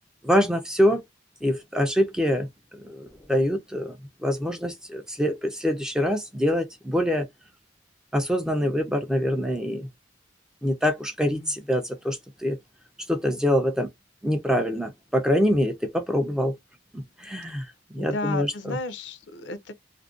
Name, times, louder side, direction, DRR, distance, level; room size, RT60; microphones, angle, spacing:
voice 1, 0.2-1.0 1.4-2.5 2.7-4.0 4.2-7.3 8.1-9.9 10.6-12.6 13.1-13.9 14.2-16.6 16.9-18.8, equal, 5° right, 0.3 m, -25 dB
voice 2, 11.2-11.5 18.0-19.7, left 3 dB, 70° left, 0.5 m, -33 dB
2.5 x 2.1 x 2.3 m
head